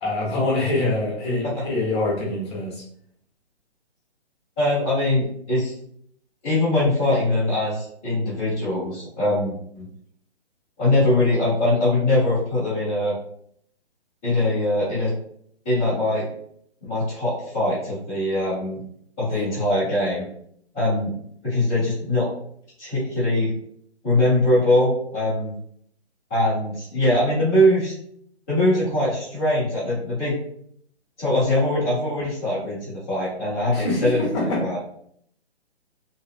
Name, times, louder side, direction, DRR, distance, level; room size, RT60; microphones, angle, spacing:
voice 1, 0.0-2.8 33.7-34.6, left 2 dB, 25° left, -3 dB, 0.9 m, -25 dB
voice 2, 4.6-5.7 6.4-9.8 10.8-13.1 14.2-15.1 15.6-16.3 16.8-18.8 19.2-20.2 20.7-21.1 21.4-22.3 22.8-23.5 24.0-25.5 26.3-27.9 28.5-30.4 31.2-34.2 34.6-34.8, left 1 dB, 10° left, -15 dB, 0.4 m, -22 dB
2.7 x 2.3 x 2.3 m, 0.65 s
figure-of-eight pair, 140°, 34 cm